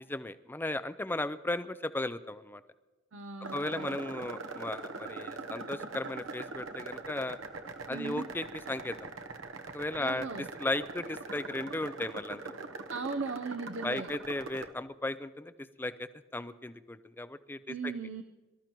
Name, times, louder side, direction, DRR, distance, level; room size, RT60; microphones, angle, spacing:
voice 1, 0.0-2.6 3.5-7.4 7.9-9.1 9.7-10.3 10.6-12.6 13.8-15.5 15.8-17.9, left 2 dB, 10° left, 13 dB, 0.5 m, -36 dB
voice 2, 3.1-4.0 7.9-8.3 10.0-10.5 12.9-14.1 17.7-18.2, right 4 dB, 75° right, 7 dB, 0.6 m, -38 dB
sound 1, 3.4-14.7, right 3 dB, 90° right, 1.1 m, -42 dB
24.0 x 13.5 x 3.0 m, 1.2 s
head